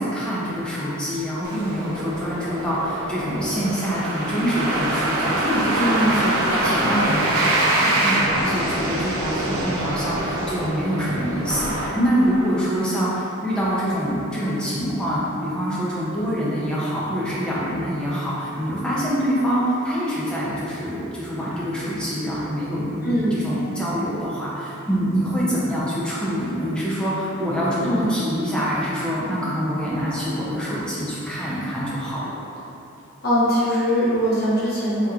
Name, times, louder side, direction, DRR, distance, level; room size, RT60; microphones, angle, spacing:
voice 1, 0.0-32.3, equal, 5° left, -8 dB, 0.5 m, -25 dB
sound 1, 1.4-12.6, right 1 dB, 85° right, 0.5 m, -25 dB
voice 2, 5.8-6.2 23.0-23.4 27.8-28.1 33.2-35.1, equal, 45° left, -11 dB, 0.9 m, -21 dB
3.5 x 2.9 x 2.3 m, 2.9 s
head